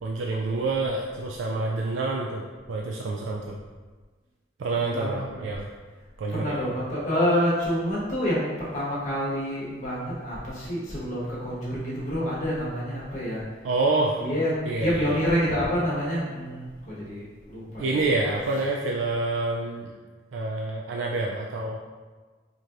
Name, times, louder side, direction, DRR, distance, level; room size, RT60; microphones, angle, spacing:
voice 1, 0.0-3.6 4.6-5.7 6.2-6.6 13.6-14.2 14.6-15.3 17.8-19.9 20.3-21.8, right 3 dB, 80° right, -1 dB, 0.3 m, -27 dB
voice 2, 4.8-5.4 6.3-13.4 14.2-17.9, equal, 40° left, -8 dB, 1.2 m, -28 dB
4.5 x 2.9 x 2.5 m, 1.4 s
head